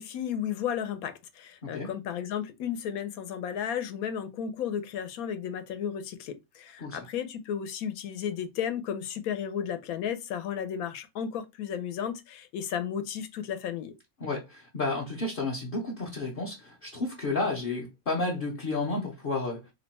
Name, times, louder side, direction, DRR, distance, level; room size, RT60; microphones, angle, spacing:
voice 1, 0.0-13.9, left 8 dB, 85° left, 1.1 m, -33 dB
voice 2, 14.2-19.7, left 3 dB, 50° left, 0.7 m, -31 dB
2.8 x 2.2 x 4.0 m
omnidirectional pair, 1.5 m